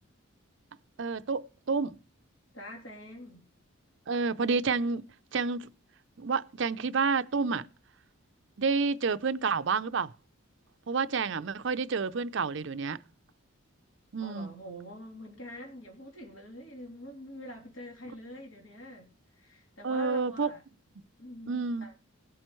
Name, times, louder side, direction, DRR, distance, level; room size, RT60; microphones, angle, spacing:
voice 1, 1.0-2.0 4.1-5.1 5.3-5.7 6.2-7.7 8.6-10.1 10.9-13.0 14.1-14.5 19.8-20.5 21.5-21.9, right 4 dB, 55° right, 0.5 m, -29 dB
voice 2, 2.5-3.4 14.2-20.6 21.2-21.9, equal, 70° left, 3.1 m, -45 dB
19.5 x 7.9 x 3.1 m
head